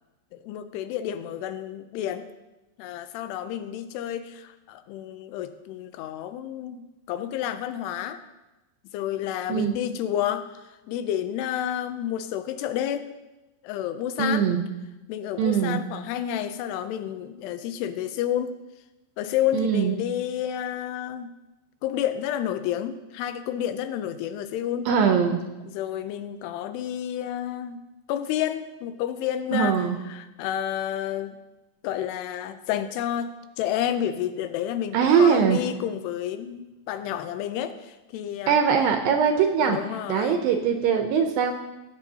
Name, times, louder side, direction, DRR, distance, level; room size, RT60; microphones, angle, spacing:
voice 1, 0.3-2.3 2.8-8.2 8.9-10.5 10.9-13.1 13.6-14.5 15.1-18.6 19.2-21.3 21.8-24.9 25.6-27.8 28.1-31.4 31.8-38.6 39.6-40.4, left 10 dB, 85° left, 10 dB, 2.7 m, -30 dB
voice 2, 14.2-14.6 15.4-15.8 19.5-20.0 24.9-25.4 29.5-30.0 34.9-35.6 38.5-39.8 40.1-41.5, right 7 dB, 80° right, 5 dB, 2.2 m, -21 dB
17.5 x 8.1 x 2.8 m, 1.0 s
omnidirectional pair, 4.7 m